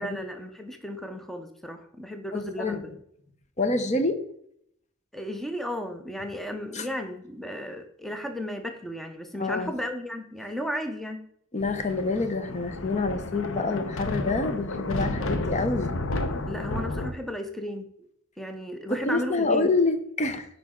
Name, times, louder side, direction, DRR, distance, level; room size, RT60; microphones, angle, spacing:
voice 1, 0.0-2.8 5.1-11.3 16.5-17.9 18.4-19.7, equal, ahead, 6 dB, 0.7 m, -34 dB
voice 2, 2.3-2.8 3.6-4.2 6.7-6.8 9.4-9.7 11.5-15.9 18.9-20.5, left 3 dB, 35° left, 8 dB, 0.7 m, -27 dB
Thunder, 11.6-17.1, left 2 dB, 80° left, 0.8 m, -31 dB
9.1 x 5.2 x 3.7 m, 0.70 s
head